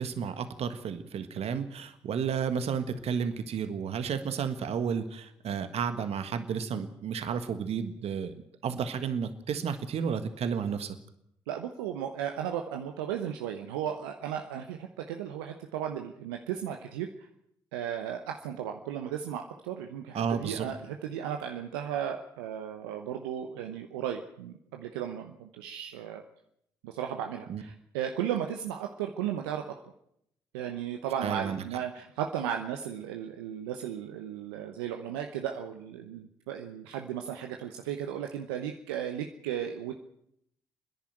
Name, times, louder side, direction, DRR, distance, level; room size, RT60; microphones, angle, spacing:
voice 1, 0.0-8.3 8.6-11.0 20.1-20.7 27.5-27.6 31.2-31.6, right 7 dB, 60° right, 10 dB, 1.6 m, -32 dB
voice 2, 11.5-17.1 17.7-26.2 26.8-29.7 30.5-39.9, right 9 dB, 85° right, 4 dB, 1.0 m, -35 dB
27.5 x 10.5 x 9.0 m, 0.76 s
hypercardioid pair, 45°, 12 cm